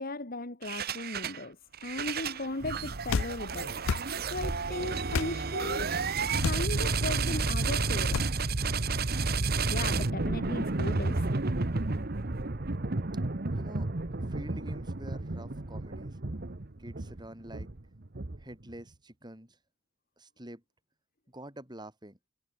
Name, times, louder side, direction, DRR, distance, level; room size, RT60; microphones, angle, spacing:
voice 1, 0.0-1.6 1.8-3.8 4.3-8.2 9.7-11.3, left 2 dB, 45° left, 1.7 m, -37 dB
sound 1, 0.6-1.4 1.7-18.7, right 3 dB, 50° right, 1.2 m, -31 dB
sound 2, 3.1-3.3 3.8-4.1 5.1-5.3 6.4-6.7 8.1-8.3, left 5 dB, 75° left, 0.5 m, -29 dB
voice 2, 13.5-16.2 16.8-17.7 18.4-19.6 20.2-20.6 21.3-22.2, right 1 dB, 20° right, 6.7 m, -47 dB
head